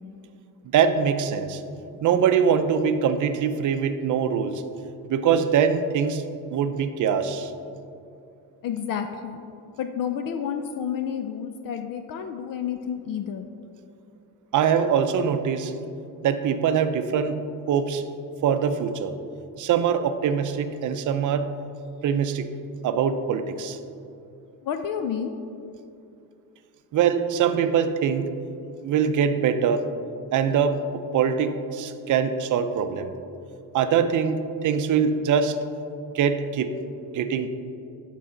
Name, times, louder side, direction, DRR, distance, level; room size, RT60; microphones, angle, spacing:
voice 1, 0.7-1.6 2.0-4.6 5.1-6.2 6.5-7.5 14.5-15.7 16.2-17.4 17.7-18.0 18.4-19.1 19.6-21.5 22.0-22.5 22.8-23.8 26.9-28.3 28.8-29.9 30.3-30.8 31.1-33.1 33.7-35.6 36.1-36.7 37.1-37.5, right 7 dB, 50° right, 10 dB, 0.6 m, -23 dB
voice 2, 8.6-9.4 9.8-13.5 24.6-25.3, left 8 dB, 55° left, 7 dB, 0.5 m, -30 dB
11.0 x 4.9 x 3.8 m, 2.6 s
cardioid pair, 120°, 41 cm